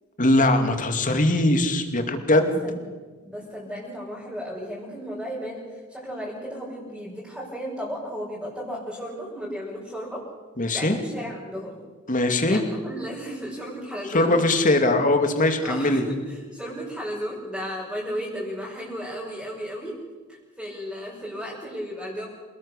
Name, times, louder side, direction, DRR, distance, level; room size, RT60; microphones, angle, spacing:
voice 1, 0.2-2.6 10.6-11.0 12.1-12.6 14.1-16.0, left 1 dB, 35° left, 6 dB, 2.5 m, -21 dB
voice 2, 3.2-10.2 10.7-11.8 12.5-14.3 15.6-20.0 20.3-22.3, equal, ahead, -7 dB, 5.5 m, -34 dB
27.5 x 19.0 x 6.7 m, 1.4 s
head